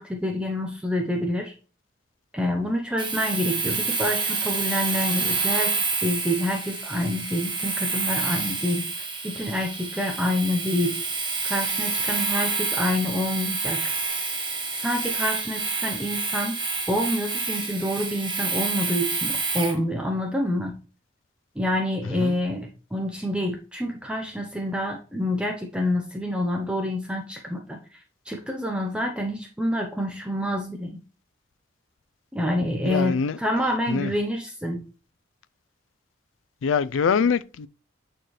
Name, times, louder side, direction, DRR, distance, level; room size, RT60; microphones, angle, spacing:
voice 1, 0.0-1.5 2.3-11.0 11.4-14.0 14.7-16.6 16.9-20.7 21.6-27.8 28.3-31.0 32.3-34.8, left 1 dB, 5° right, 0.7 m, -27 dB
Domestic sounds home sounds, 3.0-19.8, right 4 dB, 25° right, 1.3 m, -28 dB
voice 2, 32.9-33.4 33.9-34.1 36.6-37.7, left 6 dB, 90° left, 0.4 m, -24 dB
8.8 x 4.4 x 3.2 m
head